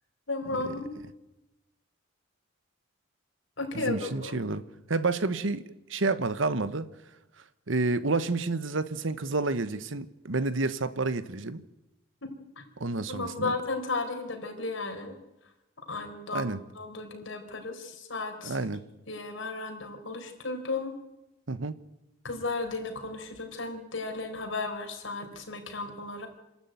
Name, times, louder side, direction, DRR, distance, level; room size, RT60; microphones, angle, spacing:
voice 1, 0.3-0.9 3.6-4.4 12.2-12.6 13.1-15.2 15.9-18.6 19.1-20.9 22.2-26.3, left 3 dB, 85° left, 4.6 m, -34 dB
voice 2, 3.7-4.6 4.9-6.9 7.7-11.6 12.8-13.6 16.3-16.6 18.4-18.8 21.5-21.8, right 3 dB, 80° right, 1.2 m, -29 dB
27.0 x 13.0 x 9.3 m
head